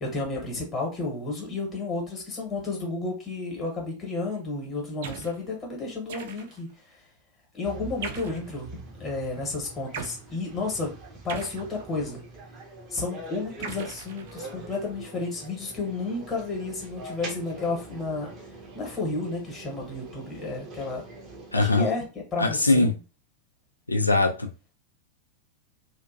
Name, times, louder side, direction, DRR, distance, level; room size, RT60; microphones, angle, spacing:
voice 1, 0.0-7.0 7.5-10.9 11.2-12.2 12.9-18.3 18.7-21.0 21.6-22.0 22.3-22.9, left 3 dB, 25° left, 0 dB, 1.0 m, -32 dB
sound 1, 5.0-5.4 6.1-6.7 8.0-8.5 9.9-10.2 11.3-12.2 13.6-14.7, right 6 dB, 55° right, 0.4 m, -39 dB
sound 2, 7.6-21.8, right 2 dB, 35° right, 0.7 m, -44 dB
voice 2, 21.5-21.9 22.4-22.9 23.9-24.5, left 2 dB, 80° left, 5 dB, 0.4 m, -21 dB
2.6 x 2.1 x 2.5 m, 0.33 s
figure-of-eight pair, 90°, 0 cm